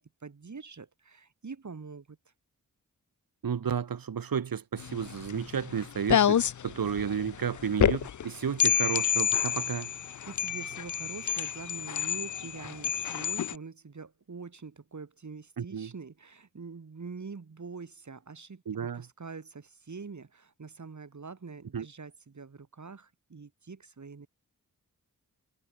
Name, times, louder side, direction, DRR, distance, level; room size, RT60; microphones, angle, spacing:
voice 1, 0.0-2.2 9.9-24.3, right 4 dB, 55° right, 4.6 m, -45 dB
voice 2, 3.4-9.9 15.6-15.9 18.7-19.1 21.7-21.9, right 7 dB, 80° right, 1.9 m, -32 dB
sound 1, 4.8-13.5, left 9 dB, 60° left, 0.6 m, -29 dB
wide cardioid pair, 85°, 34 cm